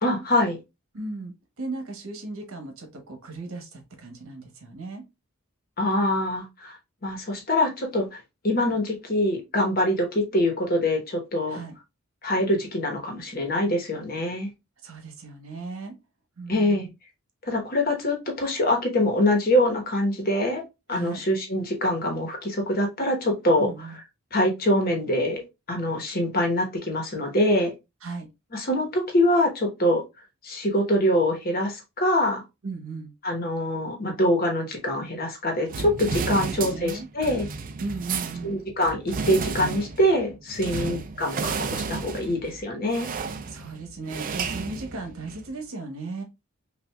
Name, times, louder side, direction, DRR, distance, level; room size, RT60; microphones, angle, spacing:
voice 1, 0.0-0.6 5.8-6.8 7.0-11.6 12.2-14.5 16.5-16.9 17.4-20.6 20.9-23.7 24.3-27.7 28.5-30.0 30.4-32.4 33.2-37.5 38.4-43.1, left 1 dB, 45° left, 1.1 m, -24 dB
voice 2, 0.9-5.0 11.5-11.7 14.8-15.9 16.4-16.9 20.9-21.2 23.6-24.0 28.0-28.3 32.6-33.1 36.3-37.1 37.8-38.6 40.7-41.0 43.5-46.2, right 3 dB, 75° right, 1.0 m, -36 dB
sound 1, 35.7-45.5, right 5 dB, 40° right, 0.4 m, -33 dB
5.6 x 2.5 x 2.3 m
head